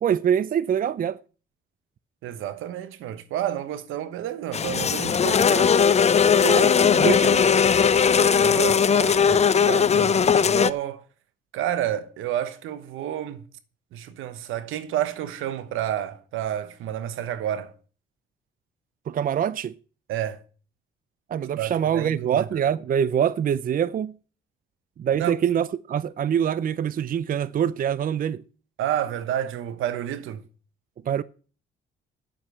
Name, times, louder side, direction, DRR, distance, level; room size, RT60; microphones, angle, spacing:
voice 1, 0.0-1.2 6.4-7.4 19.1-19.8 21.3-24.1 25.0-28.4 31.1-31.2, right 8 dB, 45° right, 0.5 m, -24 dB
voice 2, 2.2-5.8 8.4-11.0 11.5-13.5 13.9-17.7 20.1-20.4 21.6-22.5 25.2-25.4 28.8-30.4, right 11 dB, 85° right, 1.1 m, -30 dB
sound 1, 4.5-10.7, left 6 dB, 35° left, 0.6 m, -19 dB
Speech / Wind, 4.5-9.4, equal, 5° left, 3.6 m, -48 dB
9.1 x 7.5 x 7.7 m
cardioid pair, 90°, 20 cm